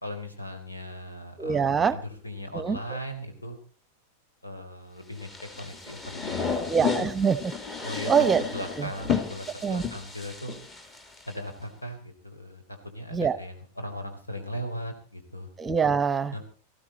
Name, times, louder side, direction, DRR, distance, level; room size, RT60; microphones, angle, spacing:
voice 1, 0.0-3.6 4.4-6.7 7.0-7.1 7.8-10.6 11.3-15.5 16.3-16.4, equal, 80° left, 6 dB, 3.8 m, -38 dB
voice 2, 1.4-2.0 2.5-2.8 6.7-7.4 8.1-8.4 8.8-8.9 9.6-9.8 13.1-13.4 15.6-16.3, right 6 dB, 15° right, 17 dB, 0.9 m, -24 dB
sound 1, 5.2-11.3, left 6 dB, 20° left, 2.3 m, -32 dB
19.5 x 15.5 x 4.2 m, 0.37 s
figure-of-eight pair, 90°, 0 cm